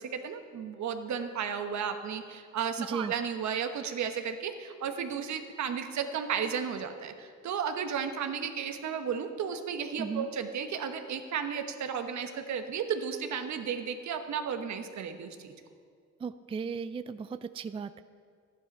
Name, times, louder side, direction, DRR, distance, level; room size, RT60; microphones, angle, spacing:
voice 1, 0.0-15.5, right 7 dB, 65° right, 7 dB, 1.2 m, -34 dB
voice 2, 2.8-3.1 10.0-10.3 16.2-18.0, right 5 dB, 20° right, 13 dB, 0.3 m, -35 dB
13.0 x 11.0 x 5.4 m, 2.2 s
cardioid pair, 90°, 30 cm